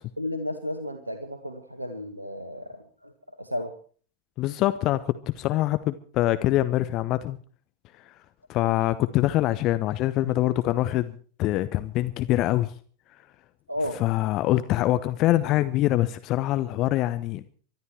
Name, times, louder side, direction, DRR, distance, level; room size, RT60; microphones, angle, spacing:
voice 1, 0.2-3.1 3.4-3.7 13.7-14.0, left 1 dB, 85° right, 8 dB, 1.8 m, -33 dB
voice 2, 4.4-7.4 8.0-8.1 8.5-12.7 14.0-17.4, left 15 dB, 40° left, 13 dB, 1.0 m, -24 dB
24.0 x 13.0 x 4.6 m, 0.43 s
figure-of-eight pair, 90°, 0 cm